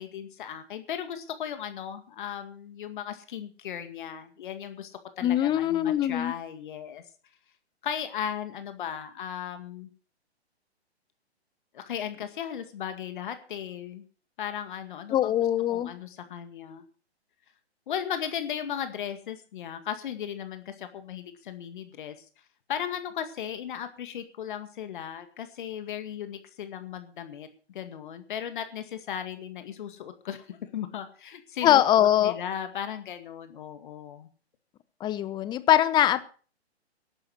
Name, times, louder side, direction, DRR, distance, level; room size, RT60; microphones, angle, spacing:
voice 1, 0.0-7.0 7.8-9.9 11.7-14.0 14.4-15.4 15.7-16.8 17.9-22.3 22.7-34.3, left 9 dB, 50° left, 9 dB, 2.0 m, -36 dB
voice 2, 5.2-6.3 15.1-15.9 31.6-32.3 35.0-36.3, left 11 dB, 15° left, 15 dB, 0.8 m, -22 dB
14.0 x 11.5 x 6.3 m, 0.39 s
figure-of-eight pair, 125°, 33 cm